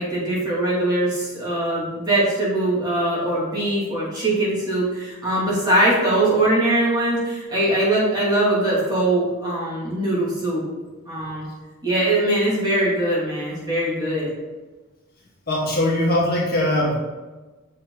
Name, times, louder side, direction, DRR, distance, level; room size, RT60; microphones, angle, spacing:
voice 1, 0.0-10.7 11.1-11.5 11.8-14.3, right 1 dB, 20° right, -7 dB, 2.8 m, -21 dB
voice 2, 15.5-17.0, left 1 dB, 45° left, -3 dB, 1.7 m, -21 dB
7.2 x 6.5 x 4.1 m, 1.2 s
head